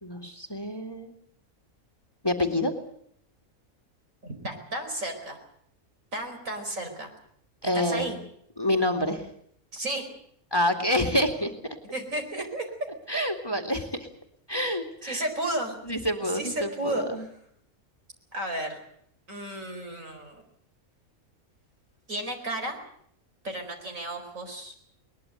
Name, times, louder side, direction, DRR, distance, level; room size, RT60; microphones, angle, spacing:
voice 1, 0.0-1.1 2.2-2.7 7.6-8.2 8.6-9.3 10.5-11.8 13.1-14.1 14.5-15.2 15.9-17.2, left 1 dB, 15° left, 4 dB, 2.2 m, -27 dB
voice 2, 4.2-5.4 6.1-7.1 7.7-8.1 9.7-10.1 11.9-12.7 15.0-15.8 16.2-17.0 18.3-18.8 19.3-20.4 22.1-22.8 23.4-24.7, right 1 dB, 65° right, 4 dB, 5.0 m, -33 dB
21.5 x 20.5 x 7.9 m, 0.68 s
omnidirectional pair, 1.5 m